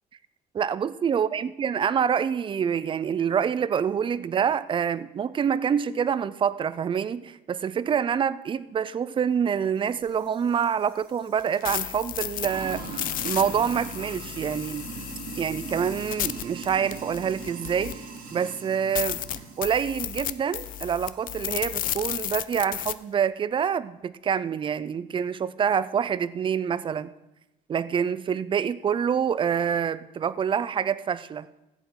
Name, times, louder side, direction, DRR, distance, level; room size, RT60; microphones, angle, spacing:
voice 1, 0.5-12.8 13.2-14.9 15.4-18.0 18.3-19.2 19.6-27.1 27.7-31.5, right 7 dB, 30° right, 17 dB, 0.4 m, -26 dB
Sink (filling or washing), 9.8-22.1, right 4 dB, 60° right, 2.0 m, -42 dB
sound 1, 11.4-18.2 18.6-18.7 19.0-22.9, left 12 dB, 55° left, 0.5 m, -33 dB
14.5 x 8.1 x 3.7 m, 0.95 s
cardioid pair, 110°, 17 cm